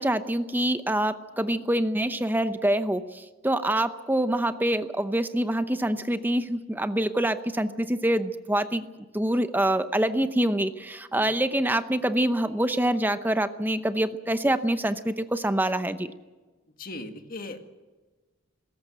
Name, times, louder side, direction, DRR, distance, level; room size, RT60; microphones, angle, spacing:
voice 1, 0.0-3.0 3.4-8.8 9.1-16.1, right 1 dB, 10° right, 10 dB, 0.7 m, -25 dB
voice 2, 16.8-17.6, left 2 dB, 40° left, 6 dB, 1.8 m, -38 dB
19.5 x 17.0 x 8.0 m, 1.2 s
head